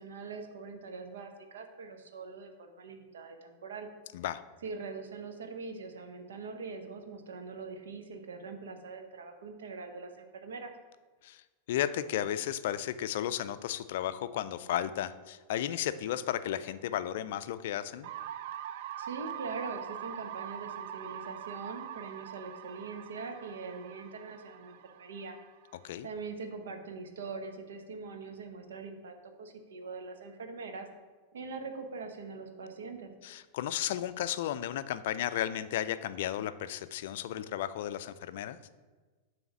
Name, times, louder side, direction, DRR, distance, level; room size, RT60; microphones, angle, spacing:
voice 1, 0.0-3.9 4.6-10.7 19.0-25.4 26.0-30.9 31.3-33.1, right 4 dB, 75° right, 6 dB, 0.8 m, -42 dB
voice 2, 11.7-18.1 25.8-26.1 33.2-38.6, left 11 dB, 65° left, 13 dB, 0.3 m, -34 dB
sound 1, 18.0-25.9, right 10 dB, 60° right, 0.3 m, -43 dB
7.1 x 3.2 x 6.0 m, 1.3 s
hypercardioid pair, 100°, 0 cm